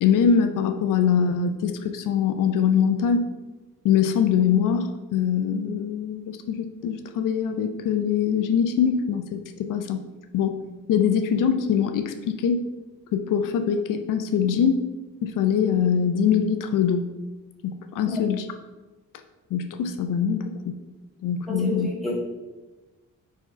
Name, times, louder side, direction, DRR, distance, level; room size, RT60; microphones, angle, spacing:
voice 1, 0.0-3.2 3.8-10.0 10.3-10.6 10.9-12.6 13.1-14.8 15.2-17.1 17.6-18.4 19.5-20.8 21.2-21.9, left 7 dB, 80° left, 7 dB, 0.6 m, -23 dB
voice 2, 21.5-22.1, left 2 dB, ahead, -5 dB, 1.5 m, -29 dB
4.7 x 4.3 x 5.3 m, 1.1 s
cardioid pair, 170°, 31 cm